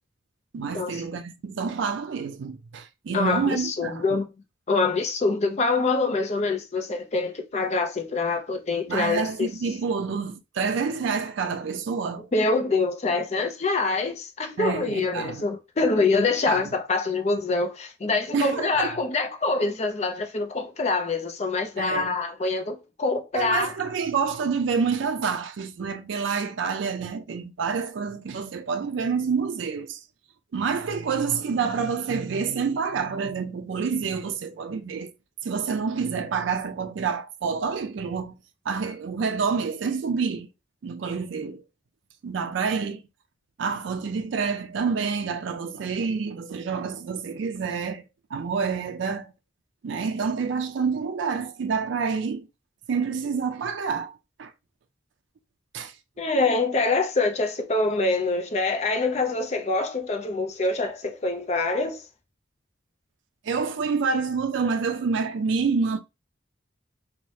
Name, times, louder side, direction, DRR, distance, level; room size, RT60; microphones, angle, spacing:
voice 1, 0.5-4.2 8.9-12.3 14.6-15.4 16.5-16.6 18.3-19.0 21.8-22.2 23.3-30.0 30.5-35.1 35.4-38.4 38.7-40.5 40.8-41.6 42.2-43.0 43.6-48.0 48.3-49.3 49.8-52.5 52.9-54.1 54.4-54.5 55.7-55.9 63.4-66.0, right 5 dB, 70° right, 0.4 m, -28 dB
voice 2, 3.1-4.3 4.7-9.5 12.3-23.7 56.2-62.0, left 3 dB, 35° left, 0.4 m, -25 dB
2.7 x 2.1 x 3.1 m
head